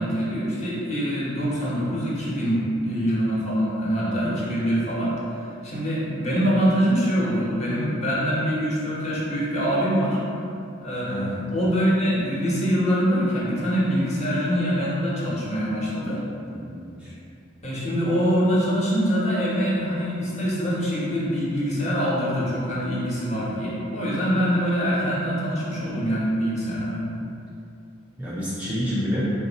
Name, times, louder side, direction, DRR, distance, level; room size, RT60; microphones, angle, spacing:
voice 1, 0.0-10.2 10.8-11.2 11.5-16.2 17.6-27.0, equal, 35° left, -7 dB, 1.0 m, -24 dB
voice 2, 4.0-4.4 11.0-11.5 16.5-17.1 28.2-29.3, equal, 5° right, -8 dB, 0.5 m, -29 dB
4.3 x 2.6 x 3.9 m, 2.6 s
head